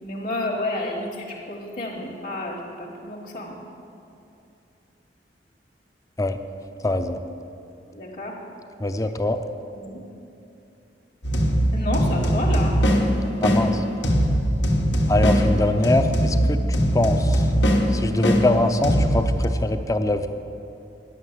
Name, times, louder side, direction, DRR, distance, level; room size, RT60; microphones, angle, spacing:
voice 1, 0.0-3.6 7.9-8.3 9.7-10.0 11.7-12.8, left 1 dB, 50° left, -4 dB, 1.4 m, -30 dB
voice 2, 6.8-7.2 8.8-9.4 13.4-13.8 15.1-17.4 17.9-20.3, left 2 dB, 20° left, 8 dB, 0.5 m, -23 dB
sound 1, 11.2-19.5, equal, 90° left, 1.4 m, -21 dB
10.5 x 8.2 x 7.4 m, 2.7 s
head